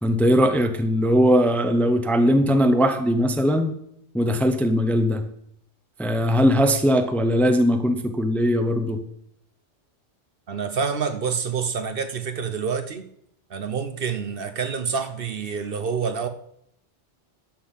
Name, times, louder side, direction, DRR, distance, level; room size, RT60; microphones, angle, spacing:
voice 1, 0.0-3.8 4.1-5.2 6.0-9.0, equal, ahead, 8 dB, 0.7 m, -20 dB
voice 2, 10.5-13.1 13.5-16.3, right 6 dB, 55° right, 9 dB, 0.9 m, -27 dB
11.5 x 5.5 x 7.3 m, 0.72 s
omnidirectional pair, 1.2 m